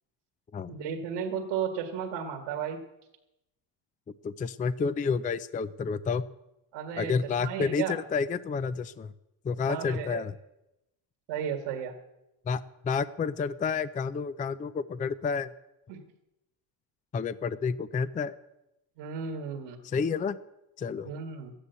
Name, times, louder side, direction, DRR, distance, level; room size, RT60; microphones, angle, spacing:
voice 1, 0.7-2.8 6.7-7.1 7.4-8.0 9.7-10.2 11.3-12.0 15.9-16.0 19.0-19.9 21.0-21.5, right 7 dB, 75° right, 2 dB, 2.0 m, -34 dB
voice 2, 4.2-6.2 7.0-9.1 9.4-10.3 12.5-15.5 17.1-18.3 19.8-20.4 20.8-21.1, left 5 dB, 20° left, 16 dB, 0.4 m, -30 dB
13.5 x 10.0 x 8.1 m, 0.92 s
supercardioid pair, 85°, 48 cm